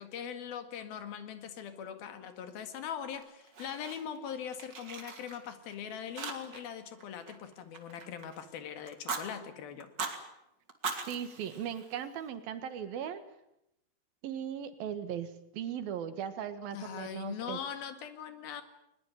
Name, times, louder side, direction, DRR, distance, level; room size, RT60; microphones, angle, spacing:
voice 1, 0.0-9.9 16.7-18.6, left 8 dB, 85° left, 9 dB, 3.9 m, -41 dB
Fire, 3.2-4.3 4.5-5.7 6.2-6.7 7.0-8.4 8.9-9.2 9.8-10.2 10.7-12.3, right 4 dB, 35° right, 2.7 m, -40 dB
voice 2, 11.1-13.2 14.2-17.6, right 9 dB, 80° right, 10 dB, 3.5 m, -38 dB
21.5 x 21.5 x 9.3 m, 0.82 s
omnidirectional pair, 4.1 m